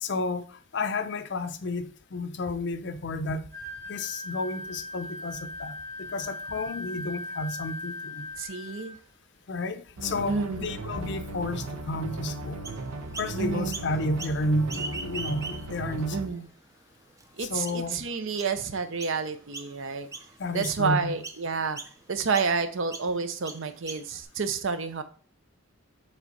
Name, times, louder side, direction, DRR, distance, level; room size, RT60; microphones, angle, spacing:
voice 1, 0.0-3.5 3.9-8.3 9.5-12.6 13.2-16.2 17.4-18.0 20.4-21.2, left 2 dB, 50° left, 0.5 m, -31 dB
Wind instrument woodwind instrument, 3.5-9.0, left 2 dB, 35° right, 1.3 m, -39 dB
voice 2, 8.4-9.0 10.3-10.7 13.4-13.8 16.1-16.5 17.4-20.1 20.5-21.8 22.1-25.0, right 5 dB, 60° right, 0.6 m, -29 dB
sound 1, 10.0-16.3, right 2 dB, 85° right, 0.8 m, -37 dB
Chirp tweet, 12.6-13.3 13.7-14.4 14.6-15.8 16.4-16.5 17.2-17.3 17.6-17.9 18.4-18.6 19.0-19.2 19.5-19.9 20.1-20.8 21.2-21.4 21.7-21.9 22.3-22.5 22.9-23.1 23.4-24.2, right 3 dB, 15° right, 0.4 m, -39 dB
7.3 x 3.3 x 4.1 m
head